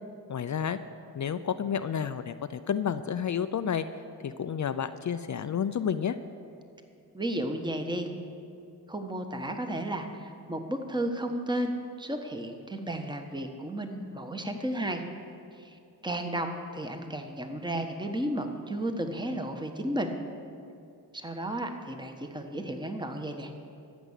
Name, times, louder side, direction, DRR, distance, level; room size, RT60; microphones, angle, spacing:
voice 1, 0.3-0.8 1.1-3.9 4.2-6.2, left 8 dB, 45° left, 11 dB, 0.5 m, -30 dB
voice 2, 7.1-8.1 8.9-15.0 15.6-20.2 21.1-23.5, right 1 dB, 10° right, 5 dB, 1.3 m, -33 dB
14.5 x 6.1 x 8.2 m, 2.5 s
cardioid pair, 65°, 40 cm